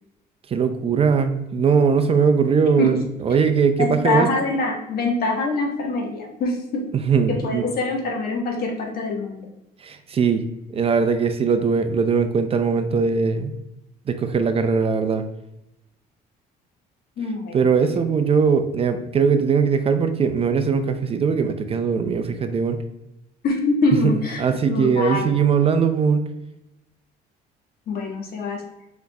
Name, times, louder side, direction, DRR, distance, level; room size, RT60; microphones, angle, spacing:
voice 1, 0.5-4.3 7.1-7.6 9.8-10.4 10.7-13.6 14.1-15.2 17.5-22.8 24.4-26.2, right 5 dB, 35° right, 8 dB, 0.5 m, -20 dB
voice 2, 3.8-6.8 7.3-9.5 17.2-17.6 23.4-25.4 27.9-28.6, left 3 dB, 60° left, 0 dB, 1.4 m, -24 dB
4.8 x 4.3 x 2.3 m, 0.90 s
cardioid pair, 110°, 17 cm